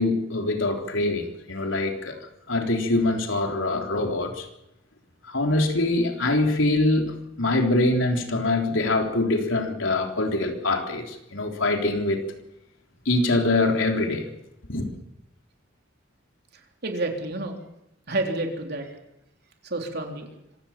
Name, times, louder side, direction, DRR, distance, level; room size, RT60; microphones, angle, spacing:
voice 1, 0.0-2.2 2.5-4.5 5.3-12.2 13.1-14.3 14.7-14.9, left 2 dB, 80° left, 3 dB, 3.7 m, -24 dB
voice 2, 16.8-17.6 18.1-18.9 19.6-20.3, right 2 dB, 55° right, 3 dB, 3.7 m, -29 dB
26.0 x 16.0 x 7.4 m, 0.86 s
head